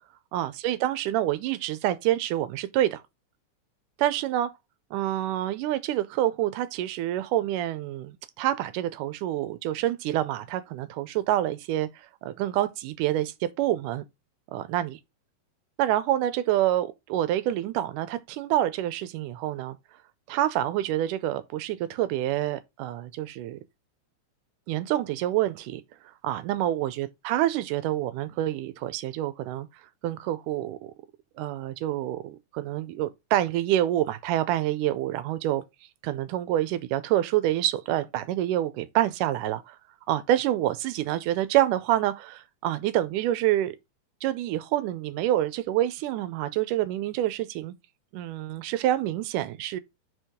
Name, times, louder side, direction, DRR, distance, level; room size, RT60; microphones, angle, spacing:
voice 1, 0.3-3.0 4.0-4.5 4.9-14.0 14.5-15.0 15.8-19.8 20.3-23.6 24.7-25.8 26.2-29.7 30.0-30.9 31.4-35.6 36.0-39.8 40.1-43.8 44.2-47.7 48.1-49.8, right 13 dB, 90° right, 2.2 m, -27 dB
5.0 x 4.6 x 4.9 m
omnidirectional pair, 3.7 m